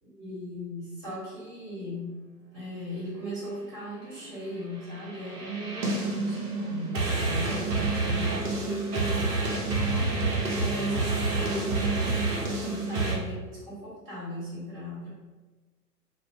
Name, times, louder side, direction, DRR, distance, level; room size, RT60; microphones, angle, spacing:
voice 1, 0.0-2.2 2.5-9.7 10.5-15.1, equal, 25° right, -9 dB, 1.5 m, -38 dB
sound 1, 4.8-13.1, right 3 dB, 70° right, 0.7 m, -28 dB
2.5 x 2.1 x 2.8 m, 1.2 s
figure-of-eight pair, 115°, 48 cm